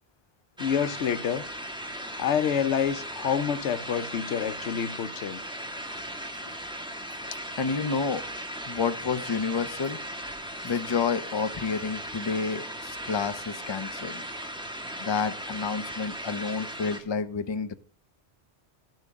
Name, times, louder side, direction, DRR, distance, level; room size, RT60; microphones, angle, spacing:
voice 1, 0.6-1.4 2.2-5.4, left 8 dB, 90° left, 1.0 m, -27 dB
sound 1, 0.6-17.0, equal, 5° right, 1.1 m, -37 dB
voice 2, 7.6-8.2 8.7-10.0 10.6-14.2 15.0-17.8, left 5 dB, 30° left, 0.6 m, -29 dB
10.5 x 10.5 x 3.5 m
omnidirectional pair, 1.2 m